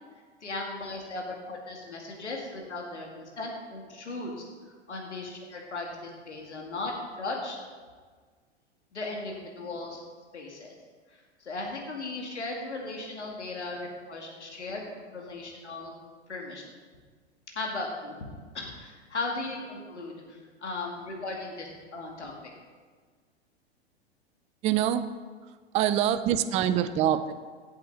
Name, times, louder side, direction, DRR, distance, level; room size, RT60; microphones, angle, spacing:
voice 1, 0.4-4.5 4.9-7.6 8.9-10.0 10.3-10.7 11.1-15.9 16.3-16.6 17.5-18.3 18.5-22.3, left 2 dB, 85° left, 0 dB, 2.3 m, -37 dB
voice 2, 24.6-25.1 25.7-27.3, right 10 dB, 20° right, 11 dB, 0.4 m, -25 dB
17.0 x 7.9 x 4.1 m, 1.5 s
figure-of-eight pair, 100°, 34 cm